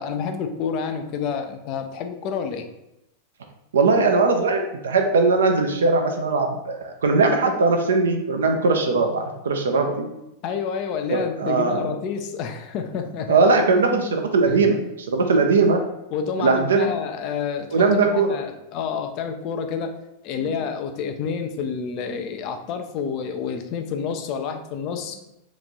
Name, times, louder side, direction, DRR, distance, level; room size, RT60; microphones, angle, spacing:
voice 1, 0.0-2.7 10.4-13.4 14.5-14.6 16.1-17.7 18.1-19.9 20.2-25.2, left 6 dB, 40° left, 6 dB, 0.4 m, -29 dB
voice 2, 3.7-10.1 11.1-12.0 13.3-15.8 16.4-16.9 17.7-18.4, right 3 dB, 65° right, 4 dB, 0.6 m, -20 dB
3.4 x 3.0 x 3.9 m, 0.89 s
figure-of-eight pair, 90°, 0 cm